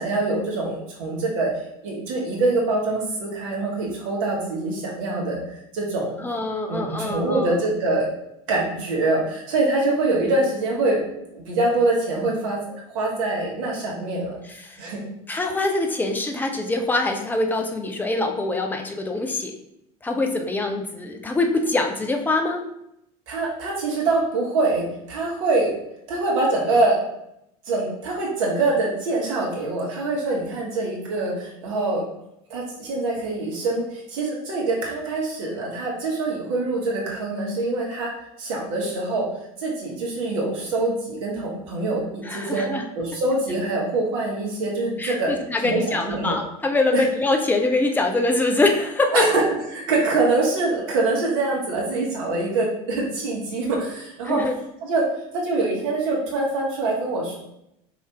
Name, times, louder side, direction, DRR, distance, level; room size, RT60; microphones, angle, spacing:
voice 1, 0.0-1.5 1.8-5.4 5.7-6.2 6.7-8.1 8.5-11.0 11.3-12.6 12.9-14.4 14.8-15.0 23.3-25.7 26.1-27.0 27.7-32.0 32.5-38.1 38.4-39.2 39.6-42.7 42.9-45.3 45.6-46.4 46.9-47.1 49.1-49.4 49.7-54.4 54.8-55.0 55.3-57.4, right 2 dB, 55° right, -3 dB, 1.3 m, -24 dB
voice 2, 6.2-7.5 14.6-14.8 15.3-19.5 20.0-22.6 42.3-42.9 45.0-49.2 54.2-54.6, left 2 dB, 10° left, 3 dB, 0.5 m, -24 dB
4.9 x 2.8 x 3.4 m, 0.80 s
figure-of-eight pair, 70°, 20 cm